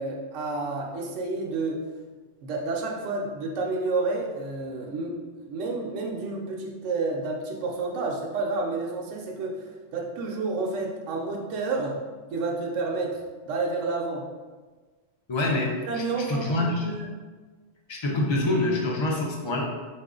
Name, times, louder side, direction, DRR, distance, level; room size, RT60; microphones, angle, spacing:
voice 1, 0.0-1.9 2.4-9.6 9.9-12.0 12.3-14.3 15.9-17.1, right 3 dB, 75° right, -1 dB, 1.0 m, -30 dB
voice 2, 15.3-16.0 16.3-16.9 17.9-19.6, left 2 dB, 35° left, -1 dB, 0.4 m, -26 dB
4.7 x 2.4 x 3.7 m, 1.4 s
omnidirectional pair, 1.3 m